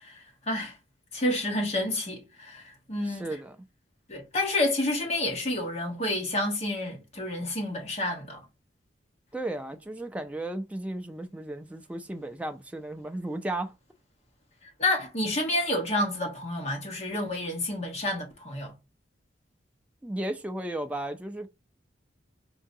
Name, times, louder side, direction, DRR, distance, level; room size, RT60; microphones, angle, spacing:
voice 1, 0.0-0.8 1.1-3.3 4.1-8.4 14.8-18.7, left 1 dB, 35° left, 1.1 m, -29 dB
voice 2, 3.1-3.6 9.3-13.8 20.0-21.5, right 1 dB, 5° right, 0.3 m, -34 dB
4.7 x 2.7 x 2.7 m
head